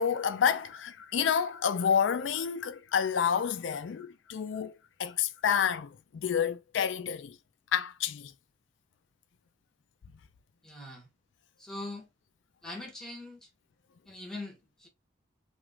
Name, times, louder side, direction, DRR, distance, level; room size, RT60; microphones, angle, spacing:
voice 1, 0.0-4.7 5.0-7.4 7.7-8.3, left 7 dB, 90° left, 0.4 m, -29 dB
voice 2, 10.6-11.1 11.6-12.1 12.6-13.5 14.1-14.9, left 2 dB, 5° left, 0.9 m, -42 dB
3.0 x 2.4 x 3.2 m
head